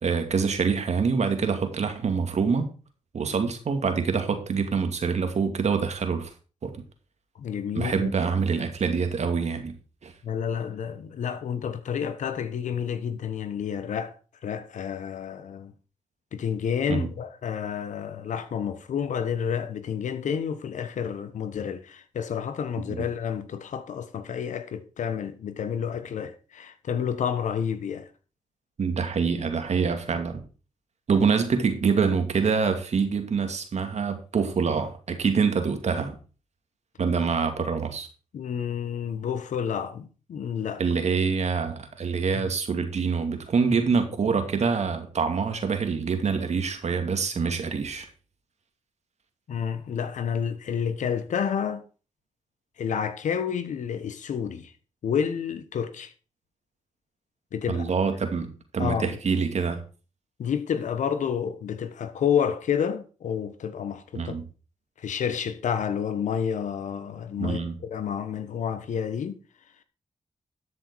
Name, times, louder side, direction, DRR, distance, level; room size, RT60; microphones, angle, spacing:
voice 1, 0.0-2.7 3.1-6.3 6.6-6.7 7.7-9.7 10.0-10.1 16.9-17.1 22.9-23.0 28.8-30.4 31.1-36.2 37.0-38.1 40.8-48.1 57.7-59.8 64.1-64.4 67.4-67.8, right 5 dB, 65° right, 2.4 m, -25 dB
voice 2, 7.4-8.1 10.2-14.1 14.4-15.7 16.3-28.1 38.3-40.8 42.3-42.4 49.5-51.8 52.8-54.7 55.0-56.1 57.5-57.9 58.8-59.2 60.4-64.4 65.0-69.3, left 7 dB, 80° left, 1.3 m, -29 dB
13.0 x 6.4 x 4.8 m
cardioid pair, 55°, 12 cm